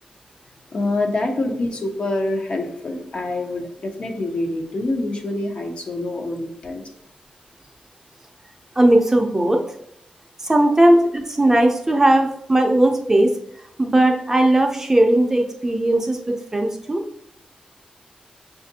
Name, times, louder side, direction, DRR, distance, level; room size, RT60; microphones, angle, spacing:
voice 1, 0.7-6.8, left 2 dB, 50° left, 2 dB, 0.6 m, -26 dB
voice 2, 8.8-9.6 10.4-13.4 13.8-17.0, right 1 dB, 20° right, 3 dB, 0.4 m, -17 dB
5.8 x 2.4 x 2.7 m, 0.75 s
wide cardioid pair, 130°, 2 cm